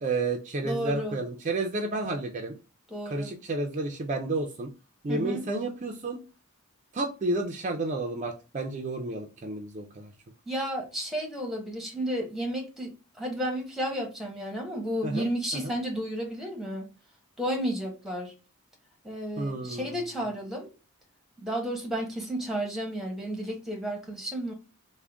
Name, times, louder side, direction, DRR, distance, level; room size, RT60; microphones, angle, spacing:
voice 1, 0.0-2.6 3.1-4.7 5.0-6.2 6.9-10.1 15.0-15.7 19.4-20.1, right 2 dB, 35° right, 0.4 m, -31 dB
voice 2, 0.6-1.2 2.9-3.3 5.1-5.4 10.5-12.9 13.2-16.9 17.4-18.3 19.0-20.7 21.4-24.5, equal, ahead, 0.9 m, -32 dB
3.6 x 2.1 x 3.4 m
head